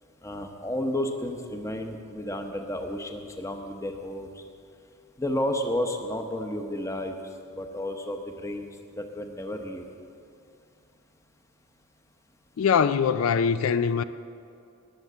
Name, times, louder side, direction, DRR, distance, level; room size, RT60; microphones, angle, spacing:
voice 1, 0.2-4.3 5.2-7.1 7.5-8.7 9.0-9.8, left 1 dB, 15° left, 0.8 m, -31 dB
voice 2, 12.6-14.0, left 6 dB, 70° left, 0.4 m, -22 dB
19.0 x 7.3 x 6.7 m
head